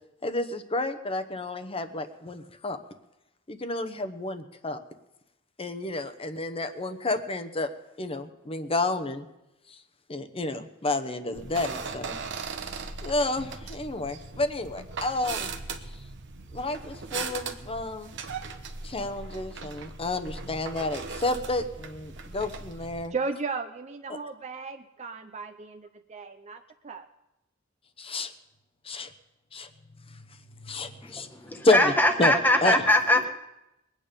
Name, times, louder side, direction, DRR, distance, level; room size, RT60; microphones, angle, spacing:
voice 1, 0.2-2.8 3.5-4.8 5.6-7.7 8.0-9.2 10.1-12.2 13.0-15.5 16.5-18.1 18.8-23.1 24.1-24.2 28.0-28.3 28.8-29.1 29.5-29.7 30.6-31.3 31.6-31.9 32.2-32.3 32.6-32.8, left 2 dB, 25° left, 9 dB, 0.9 m, -30 dB
sound 1, 11.3-23.1, right 4 dB, 60° right, 1.1 m, -38 dB
voice 2, 23.1-27.1, right 4 dB, 35° right, 5 dB, 0.6 m, -35 dB
voice 3, 31.0-33.3, left 1 dB, 10° left, 4 dB, 1.4 m, -22 dB
22.0 x 9.0 x 5.2 m, 0.91 s
head